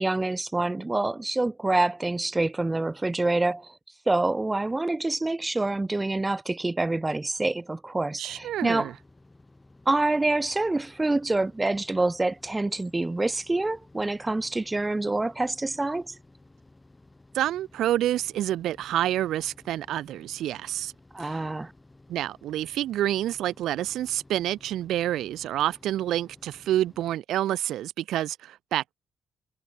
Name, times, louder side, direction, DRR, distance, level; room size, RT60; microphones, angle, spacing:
voice 1, 0.0-3.7 4.1-8.9 9.8-16.1 21.1-21.7, right 2 dB, 15° right, 1.5 m, -26 dB
voice 2, 8.2-8.9 17.3-20.9 21.2-21.5 22.1-29.0, right 13 dB, 80° right, 2.0 m, -28 dB
sound 1, 8.3-27.2, left 2 dB, 15° left, 6.7 m, -55 dB
cardioid pair, 90°, 0 cm